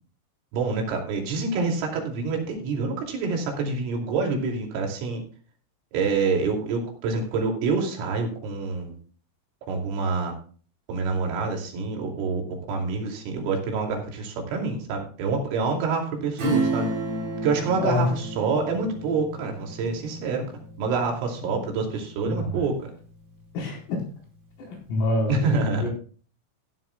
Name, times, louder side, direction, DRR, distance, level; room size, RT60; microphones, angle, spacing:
voice 1, 0.5-5.2 5.9-9.0 9.7-10.4 10.9-12.4 12.7-16.9 17.4-20.4 20.8-22.9 25.3-25.9, right 4 dB, 75° right, 1 dB, 5.2 m, -27 dB
Acoustic guitar / Strum, 16.4-22.6 23.0-23.1, right 1 dB, 45° right, 5.8 m, -31 dB
voice 2, 17.8-18.1 21.5-21.6 22.2-22.6 23.5-24.0 24.7-25.9, left 2 dB, 80° left, -2 dB, 7.0 m, -27 dB
16.5 x 12.0 x 2.3 m, 0.41 s
omnidirectional pair, 5.8 m